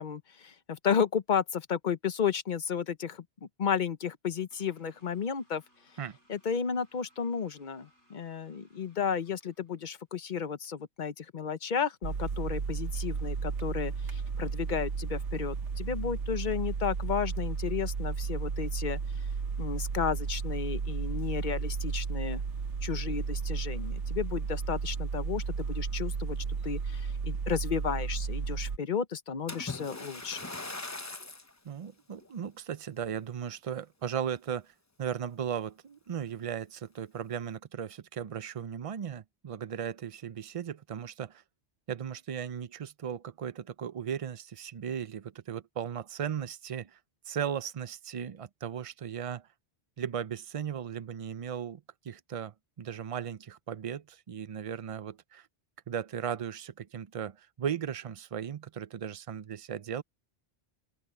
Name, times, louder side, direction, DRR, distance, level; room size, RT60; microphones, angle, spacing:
voice 1, 0.0-5.6 6.3-19.0 19.6-22.4 22.8-26.4 26.6-30.4, left 7 dB, 45° left, 0.9 m, -33 dB
sound 1, 4.5-10.1, equal, 85° left, 7.6 m, -67 dB
sound 2, 12.0-28.8, right 5 dB, 80° right, 1.4 m, -33 dB
Splash splatter, 29.5-31.5 32.2-32.4 33.0-33.1, left 3 dB, 15° left, 0.8 m, -40 dB
voice 2, 31.6-41.4 41.9-47.0 47.3-49.5 50.0-55.5 55.9-60.0, right 8 dB, 40° right, 0.5 m, -37 dB
open air
omnidirectional pair, 1.2 m